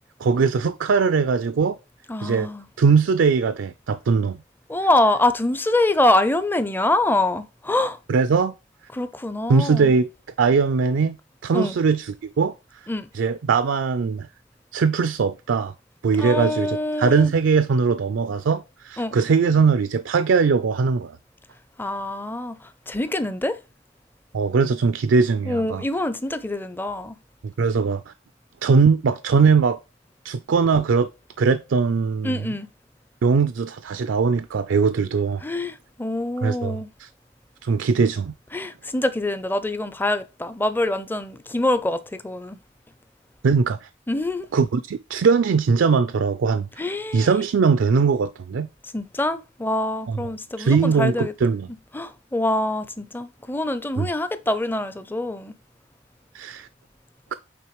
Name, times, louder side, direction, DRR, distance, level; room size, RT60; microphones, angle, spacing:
voice 1, 0.2-1.8 2.2-2.5 2.8-4.4 8.1-8.5 9.5-10.1 10.4-11.2 11.4-12.5 13.1-14.3 14.7-15.7 16.0-21.2 24.3-25.8 27.4-28.1 28.6-29.8 30.2-31.1 31.4-32.5 33.2-35.4 36.4-37.1 37.6-38.3 43.4-43.9 44.5-46.7 47.1-48.7 50.1-50.2 50.6-51.7 54.0-54.1 56.3-56.7, right 5 dB, 75° right, 0.4 m, -20 dB
voice 2, 2.1-2.7 4.7-8.0 8.9-9.9 11.5-11.8 12.9-13.1 16.2-17.3 19.0-19.2 21.8-23.6 25.5-27.2 32.2-32.7 35.4-36.9 38.5-42.6 44.1-44.5 46.8-47.5 48.9-51.3 51.9-55.5, left 1 dB, 10° left, 0.5 m, -25 dB
8.6 x 3.8 x 3.0 m
head